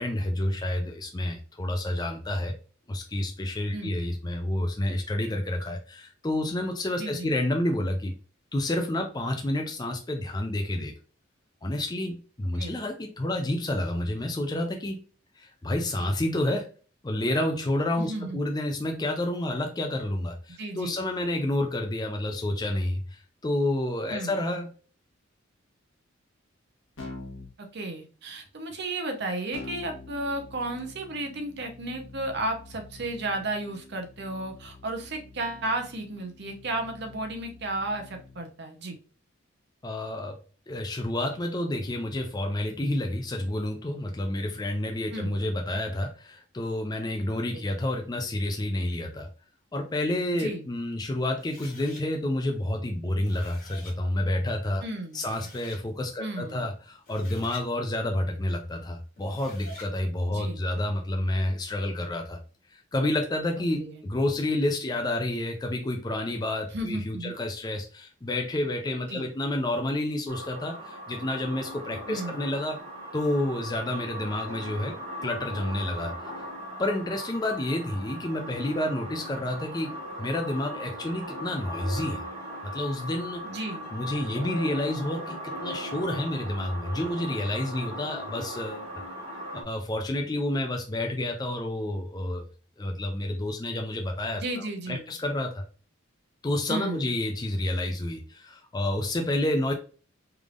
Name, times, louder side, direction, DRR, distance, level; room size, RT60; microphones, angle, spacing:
voice 1, 0.0-2.5 2.9-8.1 8.5-10.9 11.6-15.0 15.4-16.7 17.0-24.7 39.8-40.4 40.7-49.3 49.7-54.8 55.1-62.4 62.7-72.8 73.1-74.9 75.2-76.3 76.8-82.2 82.6-83.4 83.9-88.8 89.3-92.5 92.8-95.6 96.4-99.7, left 1 dB, 20° left, 3 dB, 0.4 m, -29 dB
voice 2, 7.0-7.3 12.6-12.8 18.0-18.4 20.6-21.0 24.1-24.4 27.7-39.0 45.1-45.4 47.5-47.7 50.4-50.7 54.8-55.3 56.2-56.7 60.3-60.7 63.8-64.0 66.7-67.3 69.1-69.3 72.1-72.6 83.4-83.9 94.3-95.1 96.7-97.1, right 2 dB, 55° right, 5 dB, 0.8 m, -34 dB
Keyboard (musical), 27.0-27.5 29.5-38.4, left 3 dB, 75° left, 1.2 m, -46 dB
sound 1, 51.4-52.0 53.0-54.0 54.8-54.9 55.1-55.8 56.9-57.7 59.2-59.9, left 2 dB, 45° left, 1.3 m, -48 dB
sound 2, 70.3-89.6, equal, 30° right, 1.6 m, -39 dB
3.5 x 3.3 x 2.4 m, 0.38 s
head